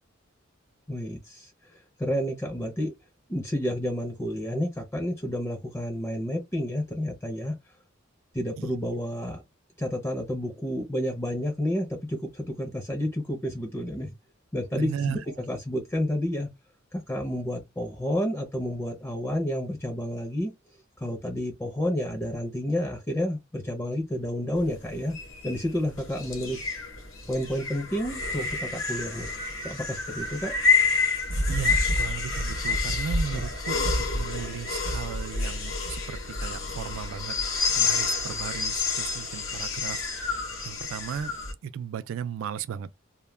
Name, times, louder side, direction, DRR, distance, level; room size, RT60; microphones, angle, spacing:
voice 1, 0.9-1.5 2.0-2.9 3.3-7.5 8.3-9.4 9.8-14.1 14.5-15.2 15.5-16.5 16.9-20.5 21.0-25.2 25.4-26.7 27.3-29.3 29.6-30.5 33.3-33.4, equal, 15° left, 0.5 m, -30 dB
voice 2, 14.7-15.4 31.5-37.4 37.7-41.3 41.6-42.9, right 8 dB, 80° right, 0.3 m, -36 dB
sound 1, 24.6-41.5, left 4 dB, 80° left, 0.9 m, -28 dB
2.2 x 2.1 x 3.1 m
head